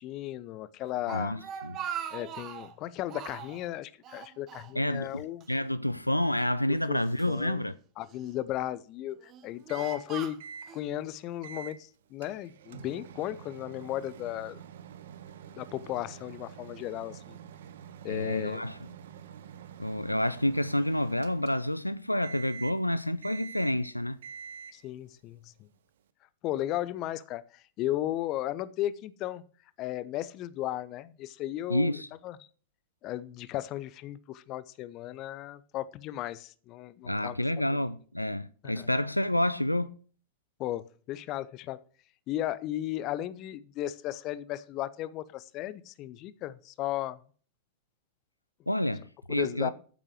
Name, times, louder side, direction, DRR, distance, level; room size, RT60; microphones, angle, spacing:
voice 1, 0.0-1.4 2.1-5.4 6.9-7.6 8.0-10.4 10.7-14.6 15.6-17.4 18.0-18.6 24.7-25.5 26.4-29.4 29.8-32.4 33.0-37.4 37.7-37.8 38.6-38.9 40.6-41.8 42.3-47.2 49.3-49.7, left 13 dB, 40° left, 0.7 m, -35 dB
Speech, 0.8-2.7 3.1-3.6 4.0-5.1 5.4-5.6 6.4-7.4 8.1-8.5 9.1-10.8, right 9 dB, 35° right, 1.1 m, -41 dB
voice 2, 1.1-1.8 4.7-5.2 5.5-7.7 18.1-18.9 19.8-24.2 31.7-32.1 37.0-39.9 48.7-49.7, left 1 dB, 85° left, 0.4 m, -29 dB
Microwave oven, 9.7-10.1 10.4-10.7 11.4-11.8 12.2-21.9 22.2-22.9 23.2-23.9 24.2-24.9, right 7 dB, 60° right, 0.8 m, -46 dB
9.4 x 7.5 x 6.3 m
figure-of-eight pair, 90°, 0 cm